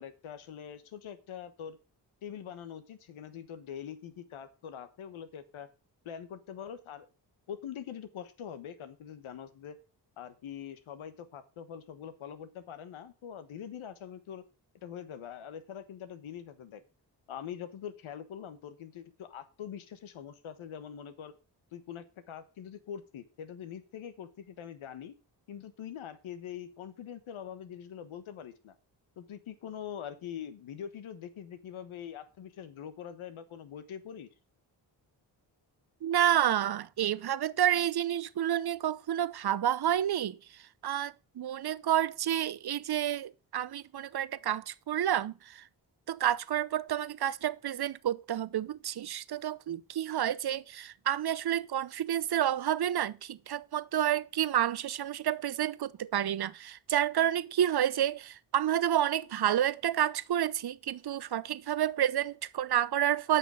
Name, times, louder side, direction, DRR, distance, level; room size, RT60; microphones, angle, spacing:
voice 1, 0.0-1.8 2.2-5.7 6.0-7.1 7.5-9.8 10.2-14.4 14.8-16.8 17.3-21.3 21.7-25.1 25.5-28.7 29.2-34.3, left 9 dB, 80° left, 1.4 m, -43 dB
voice 2, 36.0-40.4 40.8-45.6 46.1-63.4, right 11 dB, 55° right, 0.8 m, -29 dB
8.4 x 6.0 x 6.7 m
supercardioid pair, 40°, 48 cm